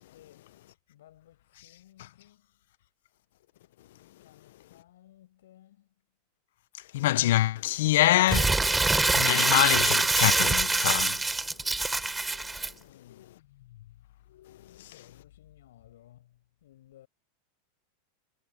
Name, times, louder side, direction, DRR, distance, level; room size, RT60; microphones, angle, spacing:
voice 1, 0.1-0.5 0.9-2.5 4.2-5.9 12.8-13.4 14.6-17.1, left 13 dB, 90° left, 7.3 m, -57 dB
voice 2, 6.9-8.6 9.1-11.2, left 15 dB, 70° left, 0.6 m, -25 dB
Crumpling crinkling, 8.3-12.7, right 3 dB, 5° right, 0.9 m, -24 dB
supercardioid pair, 160°, 0 cm